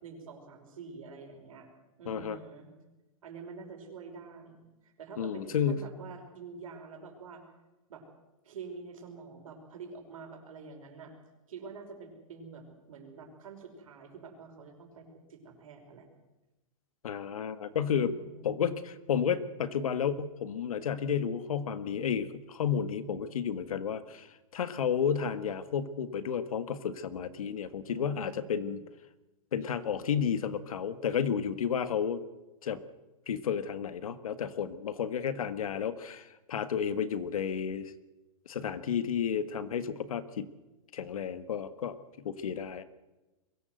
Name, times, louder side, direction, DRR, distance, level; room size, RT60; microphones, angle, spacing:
voice 1, 0.0-1.7 2.0-2.7 3.2-7.4 7.9-8.0 8.4-11.1 11.5-16.1 17.9-18.7 27.9-28.7, right 5 dB, 75° right, 4 dB, 5.5 m, -47 dB
voice 2, 2.0-2.4 5.2-5.8 17.0-18.2 18.4-24.3 24.5-28.8 29.5-32.2 32.6-32.8 33.3-37.9 38.4-40.5 40.9-42.8, left 7 dB, 85° left, 12 dB, 1.7 m, -32 dB
22.5 x 16.5 x 8.0 m, 1.1 s
hypercardioid pair, 165°, 18 cm